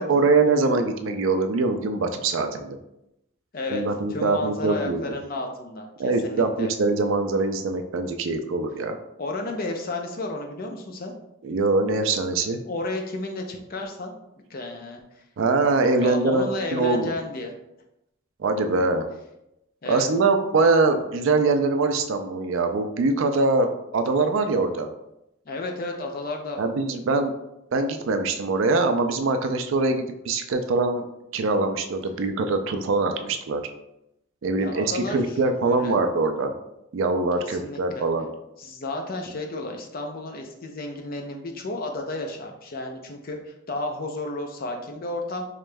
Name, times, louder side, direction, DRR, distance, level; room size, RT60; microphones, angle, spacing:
voice 1, 0.0-2.8 3.7-5.1 6.0-9.0 11.4-12.6 15.4-17.1 18.4-19.1 19.9-24.9 26.6-27.3 27.7-31.0 31.3-33.6 34.4-36.5 36.9-38.3, right 3 dB, 65° right, 7 dB, 0.4 m, -23 dB
voice 2, 4.1-6.7 9.2-11.1 12.6-14.1 14.5-15.0 16.0-17.5 19.8-20.1 25.5-26.6 34.6-35.2 35.6-36.0 37.4-38.1 38.6-45.4, left 2 dB, 45° left, 3 dB, 0.5 m, -32 dB
4.9 x 3.0 x 2.2 m, 0.85 s
head